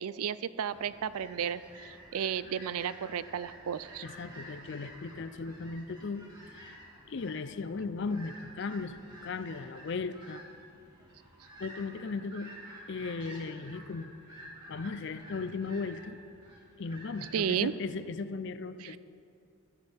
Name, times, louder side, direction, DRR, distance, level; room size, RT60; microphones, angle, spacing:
voice 1, 0.0-4.0 17.3-17.7, right 8 dB, 85° right, 16 dB, 0.4 m, -33 dB
sound 1, 0.6-17.7, right 1 dB, 20° right, 2.2 m, -51 dB
voice 2, 4.0-6.8 7.1-10.4 11.6-12.5 12.9-14.1 14.7-16.2 16.8-19.0, left 4 dB, 55° left, 13 dB, 0.5 m, -37 dB
15.0 x 13.5 x 3.5 m, 2.5 s
head